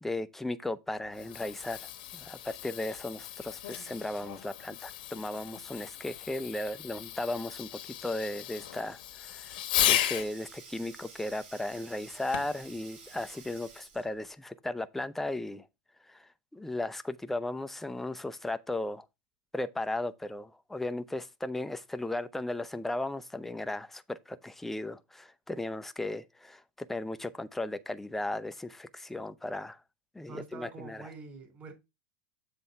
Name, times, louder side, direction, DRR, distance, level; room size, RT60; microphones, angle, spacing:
voice 1, 0.0-9.5 9.8-15.7 16.1-19.1 19.5-26.6 26.9-29.8 30.1-31.1, left 2 dB, 5° left, 0.5 m, -36 dB
Fireworks, 1.0-10.3 12.3-12.7 13.4-13.5, left 12 dB, 80° left, 1.2 m, -35 dB
Sink (filling or washing), 9.1-14.3, right 5 dB, 55° right, 4.2 m, -52 dB
voice 2, 30.3-31.7, right 4 dB, 35° right, 3.4 m, -45 dB
7.5 x 3.4 x 5.4 m
supercardioid pair, 120°, 5 cm